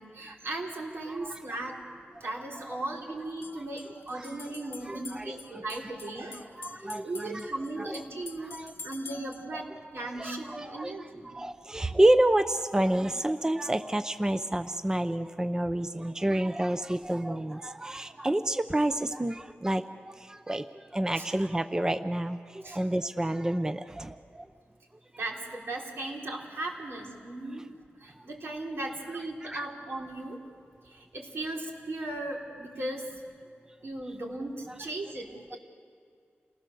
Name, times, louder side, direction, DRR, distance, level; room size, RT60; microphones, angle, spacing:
voice 1, 0.0-1.8 2.2-6.5 7.0-11.3 21.2-21.3 22.6-22.8 25.2-27.7 28.0-30.4 30.8-33.2 33.8-35.6, right 2 dB, 75° right, -2 dB, 3.9 m, -37 dB
voice 2, 1.1-1.4 4.1-4.3 4.9-5.6 6.3-7.5 7.8-8.0 8.5-8.7 9.5-9.6 10.2-10.9 11.3-24.5 29.4-29.6, right 1 dB, 15° right, 9 dB, 0.6 m, -29 dB
sound 1, 3.2-9.5, left 4 dB, 85° left, 1.1 m, -48 dB
29.5 x 19.5 x 6.9 m, 2.3 s
wide cardioid pair, 100°, 4 cm